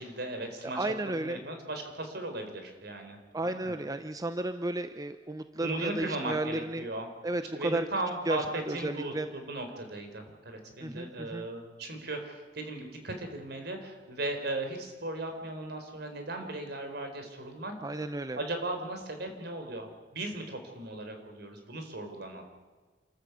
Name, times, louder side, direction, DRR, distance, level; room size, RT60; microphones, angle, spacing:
voice 1, 0.0-3.2 3.4-3.7 5.6-7.1 7.5-17.7 18.4-19.9 20.1-22.4, right 2 dB, 65° right, 5 dB, 4.4 m, -37 dB
voice 2, 0.7-1.4 3.3-6.8 7.2-7.8 8.3-9.3 10.8-11.5 17.8-18.4, right 2 dB, 20° right, 9 dB, 0.8 m, -33 dB
28.0 x 13.5 x 8.3 m, 1.4 s
head